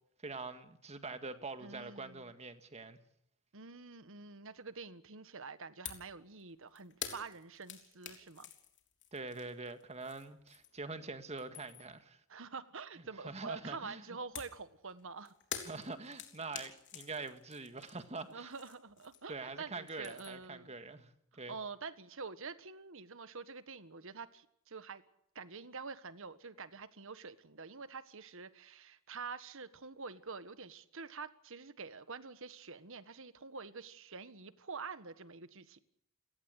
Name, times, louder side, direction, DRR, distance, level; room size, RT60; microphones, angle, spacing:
voice 1, 0.2-3.0 9.1-12.2 13.2-14.0 15.6-18.5 19.3-21.1 21.4-21.6, right 3 dB, 30° right, 1.8 m, -44 dB
voice 2, 1.6-2.3 3.5-8.5 12.3-15.3 18.3-20.7 21.3-25.0 25.3-35.8, right 4 dB, 65° right, 1.5 m, -47 dB
sound 1, 5.9-6.1 6.4-10.9 11.2-12.0 14.4-19.5 19.7-20.5, left 8 dB, 60° left, 3.5 m, -48 dB
29.5 x 17.5 x 6.6 m
head